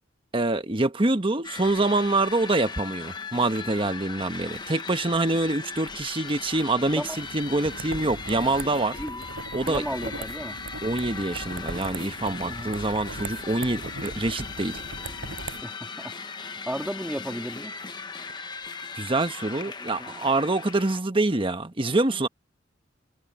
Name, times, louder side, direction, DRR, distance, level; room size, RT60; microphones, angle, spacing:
voice 1, 0.3-9.0 9.5-9.8 10.8-14.8 18.9-22.3, right 2 dB, 25° right, 1.2 m, -25 dB
sound 1, 1.4-21.0, left 4 dB, 25° left, 1.1 m, -38 dB
sound 2, 7.2-15.6, right 2 dB, 90° right, 7.5 m, -39 dB
voice 2, 9.7-10.6 12.4-12.7 15.6-16.1 16.5-17.7 19.8-20.1, equal, 5° right, 2.8 m, -34 dB
head